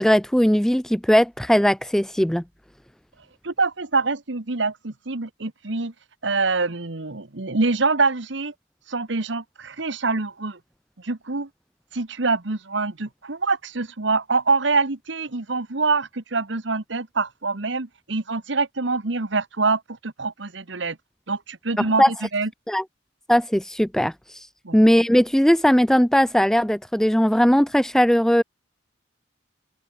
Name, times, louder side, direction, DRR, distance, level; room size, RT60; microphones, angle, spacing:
voice 1, 0.0-2.4 22.0-22.1 22.7-22.8 23.3-24.1 24.7-28.4, equal, ahead, 0.4 m, -18 dB
voice 2, 3.4-5.9 6.2-8.5 8.9-10.6 11.0-11.5 11.9-21.0 21.3-22.5 24.6-24.8, right 3 dB, 70° right, 1.4 m, -25 dB
head